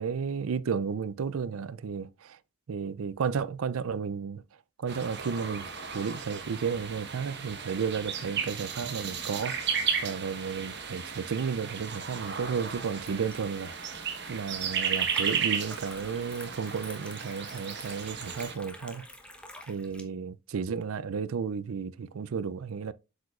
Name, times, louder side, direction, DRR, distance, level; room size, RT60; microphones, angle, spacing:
voice 1, 0.0-2.4 2.7-4.4 4.8-19.1 19.7-22.9, right 6 dB, 65° right, 0.4 m, -33 dB
sound 1, 4.9-18.5, right 7 dB, 50° right, 1.3 m, -34 dB
Liquid, 11.7-20.0, left 1 dB, 5° left, 1.0 m, -49 dB
8.0 x 6.7 x 2.4 m
head